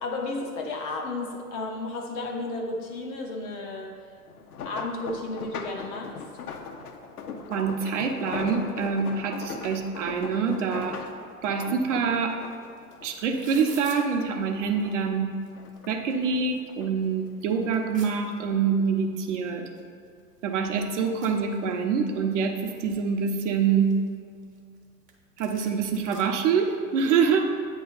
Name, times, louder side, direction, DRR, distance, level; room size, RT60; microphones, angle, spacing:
voice 1, 0.0-4.0 4.6-6.2, left 2 dB, 25° left, 1 dB, 0.5 m, -33 dB
sound 1, 4.3-13.9 14.2-15.2 15.5-16.9 17.6-17.9 18.3-18.4, left 5 dB, 75° left, 0.8 m, -39 dB
voice 2, 7.5-11.0 11.4-12.4 13.0-15.3 15.9-19.7 20.4-23.9 25.4-27.5, right 6 dB, 50° right, 3 dB, 0.9 m, -25 dB
sound 2, 12.5-12.6 12.8-14.0 14.9-15.0 15.3-16.1 16.6-16.7 17.0-18.1 19.3-19.4 19.8-19.9 20.1-22.0 22.4-23.1 23.6-24.8 25.1-25.2 25.4-26.2, right 4 dB, 15° right, 0.8 m, -48 dB
8.4 x 3.1 x 5.4 m, 2.4 s
figure-of-eight pair, 95°, 46 cm